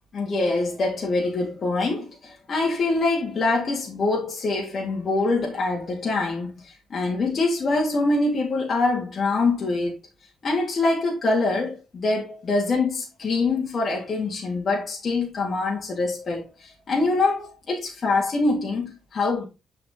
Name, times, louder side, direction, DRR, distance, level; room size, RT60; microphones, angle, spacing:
voice 1, 0.1-10.0 10.4-19.5, left 3 dB, 45° left, 3.0 m, -24 dB
6.5 x 5.8 x 3.6 m
cardioid pair, 90°, 0 cm